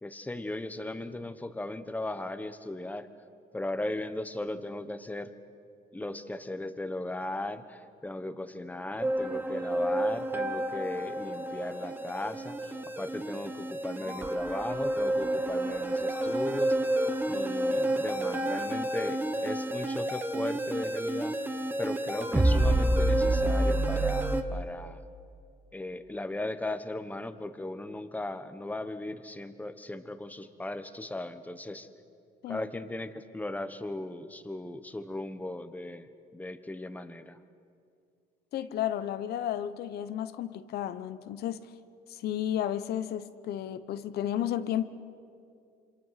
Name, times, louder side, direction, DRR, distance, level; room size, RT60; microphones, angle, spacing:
voice 1, 0.0-3.1 3.5-5.3 5.9-16.9 17.3-21.4 21.8-25.0 25.7-31.9 32.5-37.4, left 2 dB, 10° left, 1.2 m, -37 dB
sound 1, 9.0-24.4, right 1 dB, 10° right, 1.3 m, -29 dB
voice 2, 38.5-41.7 42.1-44.9, left 11 dB, 70° left, 1.0 m, -32 dB
27.5 x 26.0 x 5.9 m
cardioid pair, 110°, 17 cm